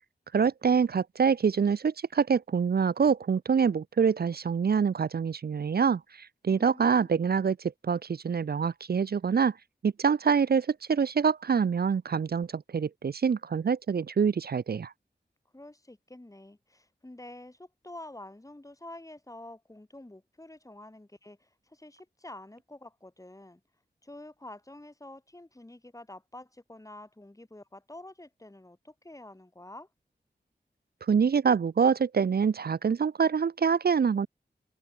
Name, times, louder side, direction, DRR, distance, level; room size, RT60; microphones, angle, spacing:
voice 1, 0.3-9.5 9.8-14.9 31.1-34.3, right 6 dB, 60° right, 0.5 m, -25 dB
voice 2, 6.5-7.1 15.5-23.6 24.0-29.9, left 1 dB, 20° left, 3.5 m, -48 dB
wide cardioid pair, 90°, 18 cm